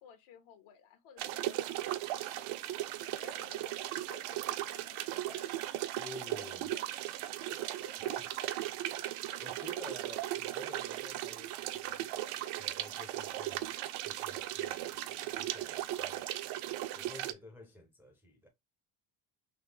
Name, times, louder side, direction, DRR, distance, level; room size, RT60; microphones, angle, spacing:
voice 1, 0.0-2.8 3.1-5.9 6.3-6.4 6.7-6.9 7.4-8.4 8.9-9.5, left 7 dB, 75° left, 1.2 m, -57 dB
sound 1, 1.2-17.3, right 14 dB, 85° right, 0.6 m, -37 dB
voice 2, 6.0-6.7 8.1-8.2 9.4-12.1 12.6-13.7 14.0-16.3 16.9-18.5, left 2 dB, 5° right, 0.4 m, -51 dB
4.2 x 3.0 x 3.2 m
cardioid pair, 175°, 49 cm